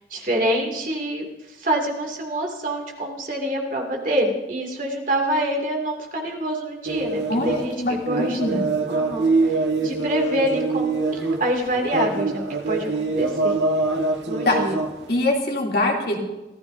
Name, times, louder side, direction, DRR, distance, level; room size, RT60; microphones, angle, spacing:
voice 1, 0.1-13.6 14.3-14.8, right 1 dB, 45° right, 1 dB, 2.5 m, -26 dB
sound 1, 6.8-15.2, right 3 dB, 85° right, 1.6 m, -24 dB
voice 2, 7.3-8.7 14.4-14.6 15.1-16.2, left 2 dB, 60° left, -1 dB, 2.8 m, -23 dB
25.0 x 15.0 x 2.7 m, 1.1 s
head